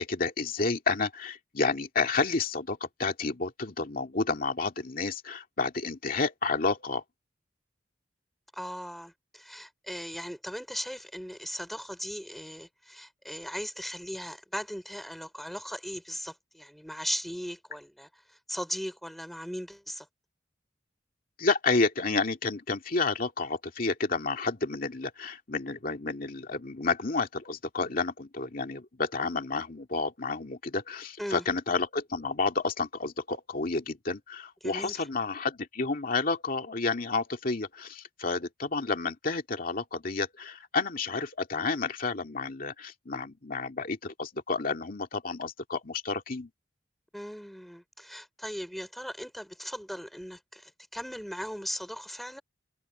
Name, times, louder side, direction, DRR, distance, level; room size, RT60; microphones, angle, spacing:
voice 1, 0.0-7.0 21.4-46.5, left 3 dB, 50° left, 2.3 m, -30 dB
voice 2, 8.5-20.1 31.2-31.4 34.6-35.1 47.1-52.4, equal, ahead, 3.7 m, -38 dB
head